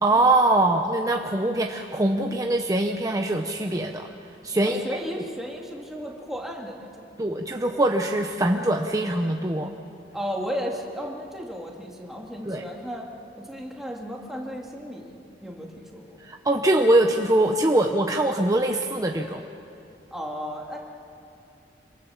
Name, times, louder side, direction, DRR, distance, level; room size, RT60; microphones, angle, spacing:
voice 1, 0.0-4.1 4.4-4.8 7.2-9.7 12.5-12.6 16.2-19.5, right 1 dB, 20° right, 3 dB, 0.9 m, -23 dB
voice 2, 4.7-7.1 10.1-13.1 13.4-16.2 20.1-20.8, equal, ahead, -1 dB, 2.7 m, -34 dB
27.0 x 24.5 x 7.3 m, 2.7 s
head